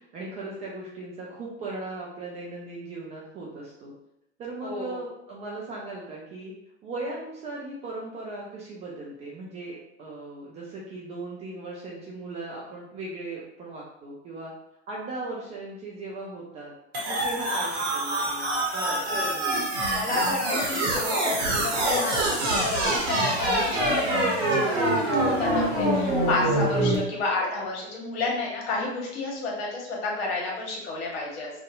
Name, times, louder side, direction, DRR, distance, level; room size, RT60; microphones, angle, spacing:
voice 1, 0.0-3.9 4.4-6.5 6.8-14.5 14.9-16.7 17.1-19.6 26.9-27.2, right 2 dB, 20° right, -4 dB, 0.3 m, -38 dB
voice 2, 4.6-5.0 19.1-19.2 19.9-31.5, left 3 dB, 55° left, -2 dB, 1.0 m, -31 dB
sound 1, 16.9-27.0, right 1 dB, 50° right, 0.9 m, -25 dB
2.6 x 2.2 x 2.3 m, 0.83 s
figure-of-eight pair, 95°, 36 cm